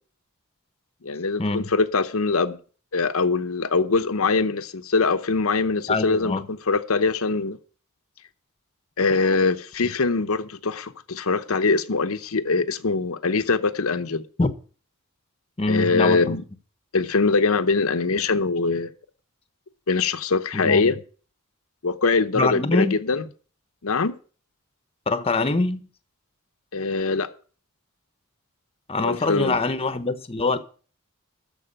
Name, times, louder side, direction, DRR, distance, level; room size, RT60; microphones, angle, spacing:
voice 1, 1.0-2.6 2.9-7.6 9.0-14.2 15.7-16.4 16.9-18.9 19.9-21.0 21.8-23.2 23.8-24.1 26.7-27.3 29.0-29.5, left 4 dB, 70° left, 0.8 m, -23 dB
voice 2, 5.9-6.5 14.4-14.5 15.6-16.4 20.5-21.0 22.3-23.0 25.1-25.9 28.9-30.6, left 3 dB, 25° left, 1.0 m, -24 dB
13.5 x 4.9 x 8.9 m
head